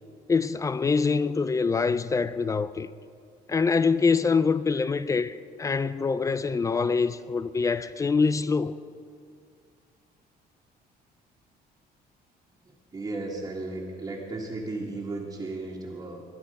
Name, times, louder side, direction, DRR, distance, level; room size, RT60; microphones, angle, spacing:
voice 1, 0.3-2.9 3.5-8.8, left 4 dB, 20° left, 0.4 m, -25 dB
voice 2, 12.6-16.2, right 2 dB, 20° right, 1.8 m, -35 dB
21.5 x 11.5 x 5.4 m
cardioid pair, 160°, 17 cm